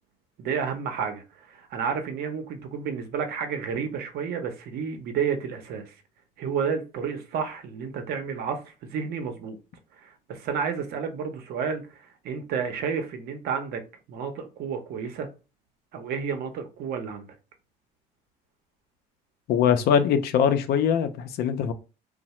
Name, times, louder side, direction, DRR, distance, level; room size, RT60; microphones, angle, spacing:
voice 1, 0.4-6.0 6.4-9.6 10.0-13.8 14.1-15.3 15.9-17.3, right 6 dB, 70° right, 0.7 m, -31 dB
voice 2, 19.5-21.7, left 8 dB, 70° left, 0.5 m, -22 dB
2.7 x 2.0 x 3.0 m
supercardioid pair, 85°, 17 cm